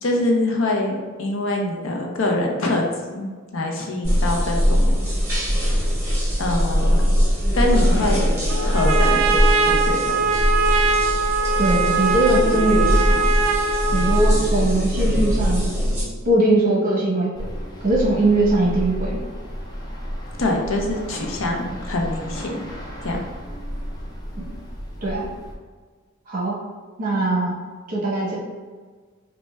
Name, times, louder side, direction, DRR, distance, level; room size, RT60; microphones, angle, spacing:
voice 1, 0.0-2.9 3.1-3.3 3.5-5.0 6.4-7.1 7.5-8.3 8.6-9.2 9.7-10.0 20.4-22.6 23.0-23.2, left 2 dB, 65° left, 1 dB, 0.6 m, -24 dB
sound 1, 4.0-16.0, equal, 10° right, 1.1 m, -21 dB
Trumpet, 8.5-14.5, right 4 dB, 75° right, 0.4 m, -22 dB
voice 2, 11.6-13.3 13.9-16.0 16.2-17.5 17.8-19.2 24.4-24.5 25.0-25.3 26.3-26.6 27.0-27.6 27.9-28.4, right 2 dB, 40° right, -4 dB, 0.9 m, -21 dB
sound 2, 17.3-25.6, equal, 20° left, 0.4 m, -33 dB
5.2 x 2.2 x 2.3 m, 1.5 s
head